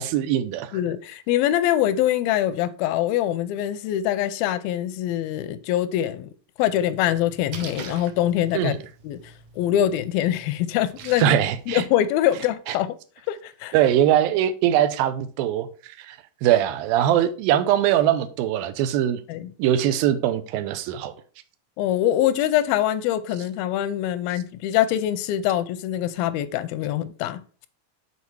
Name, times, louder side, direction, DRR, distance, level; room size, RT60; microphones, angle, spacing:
voice 1, 0.0-0.7 8.5-8.8 11.2-11.8 12.7-12.8 13.7-19.2 19.6-21.1, right 11 dB, 90° right, 2.5 m, -22 dB
voice 2, 0.7-6.3 6.6-8.8 9.0-11.4 11.7-12.9 13.3-13.8 19.3-19.5 21.8-27.7, left 12 dB, 90° left, 2.4 m, -24 dB
Splash splatter, 6.8-11.8, right 6 dB, 70° right, 2.0 m, -43 dB
7.0 x 4.2 x 4.7 m
omnidirectional pair, 4.1 m